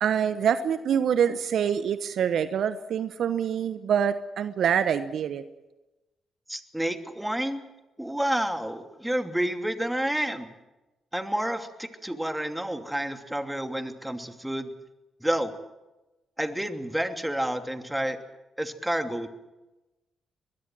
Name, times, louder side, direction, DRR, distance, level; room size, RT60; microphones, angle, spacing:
voice 1, 0.0-5.4, right 8 dB, 65° right, 13 dB, 1.0 m, -25 dB
voice 2, 6.5-7.6 8.0-10.5 11.1-14.7 15.2-15.5 16.4-18.2 18.6-19.3, right 1 dB, 5° right, 7 dB, 2.7 m, -29 dB
23.5 x 21.0 x 7.6 m, 1.0 s
hypercardioid pair, 40°, 0 cm